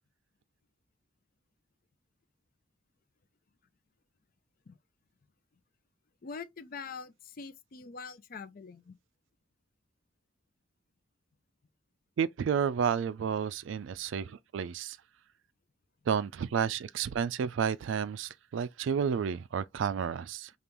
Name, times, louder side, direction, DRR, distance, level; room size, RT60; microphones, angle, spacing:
voice 1, 6.2-9.0, left 5 dB, 45° left, 0.4 m, -44 dB
voice 2, 12.2-15.0 16.1-20.5, right 7 dB, 70° right, 0.3 m, -31 dB
5.2 x 2.4 x 3.0 m
head